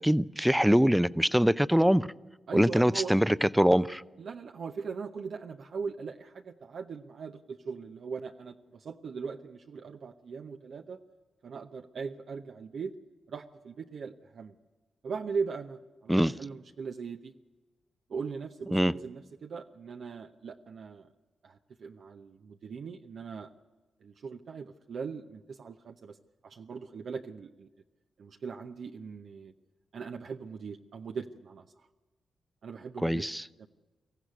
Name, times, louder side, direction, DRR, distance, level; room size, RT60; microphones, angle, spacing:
voice 1, 0.0-2.1 2.5-4.0 16.1-16.3 18.7-18.9 33.0-33.4, equal, 5° right, 16 dB, 0.6 m, -23 dB
voice 2, 2.5-3.2 4.2-11.0 11.4-12.9 13.3-14.5 15.0-17.3 18.1-21.1 21.4-23.5 24.0-26.2 26.4-27.7 28.2-29.5 29.9-31.9 32.6-33.3 33.6-33.7, right 5 dB, 70° right, 4 dB, 0.8 m, -39 dB
23.5 x 15.0 x 9.6 m, 1.2 s
supercardioid pair, 45°, 0 cm